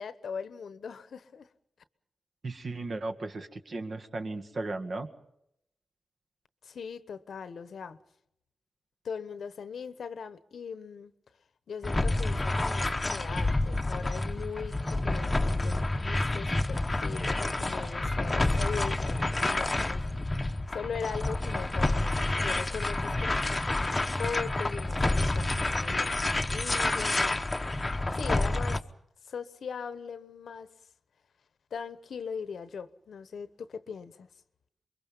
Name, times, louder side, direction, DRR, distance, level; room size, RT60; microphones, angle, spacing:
voice 1, 0.0-1.5 6.6-8.0 9.0-11.1 11.7-20.5 20.7-27.7 28.1-28.8 29.2-30.7 31.7-34.3, left 6 dB, 75° left, 1.1 m, -40 dB
voice 2, 2.4-5.1, right 2 dB, 50° right, 1.9 m, -36 dB
sound 1, 11.8-28.8, left 2 dB, 20° left, 1.0 m, -29 dB
28.0 x 22.5 x 5.5 m
wide cardioid pair, 110°, 0 cm